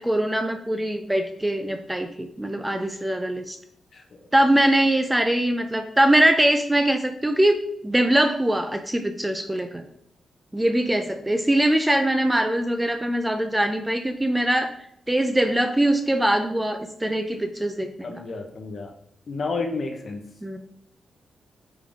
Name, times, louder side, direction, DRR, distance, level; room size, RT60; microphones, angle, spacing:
voice 1, 0.0-3.6 4.3-7.6 7.8-9.8 10.5-14.7 15.1-18.1 20.4-20.6, right 1 dB, 5° right, 7 dB, 0.4 m, -22 dB
voice 2, 18.0-18.9 19.3-20.2, left 3 dB, 40° left, 4 dB, 1.0 m, -30 dB
9.2 x 3.8 x 3.5 m, 0.69 s
wide cardioid pair, 165°, 0 cm